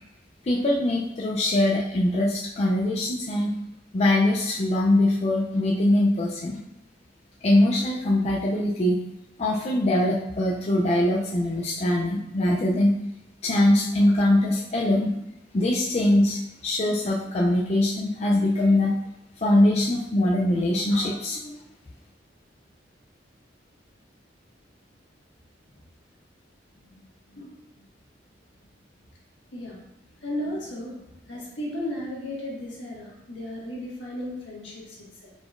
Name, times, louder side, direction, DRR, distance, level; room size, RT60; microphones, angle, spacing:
voice 1, 0.4-3.6 3.9-6.6 7.4-9.0 9.4-13.0 13.4-15.2 15.5-19.0 19.4-21.6, left 1 dB, 35° left, -3 dB, 0.4 m, -22 dB
voice 2, 27.3-27.8 29.5-29.8 30.2-35.3, left 1 dB, 70° left, -5 dB, 1.6 m, -35 dB
4.8 x 4.0 x 2.5 m, 0.86 s
head